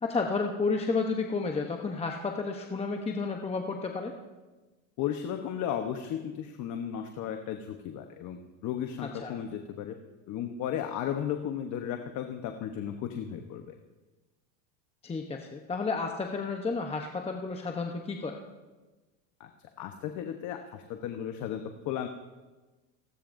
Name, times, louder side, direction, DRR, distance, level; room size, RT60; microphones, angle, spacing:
voice 1, 0.0-4.1 9.2-9.3 15.0-18.4, left 4 dB, 15° left, 2 dB, 0.9 m, -31 dB
voice 2, 5.0-10.0 10.3-13.7 19.4-19.5 19.8-22.1, left 9 dB, 45° left, 5 dB, 1.1 m, -35 dB
29.0 x 12.5 x 2.6 m, 1.2 s
supercardioid pair, 120°, 42 cm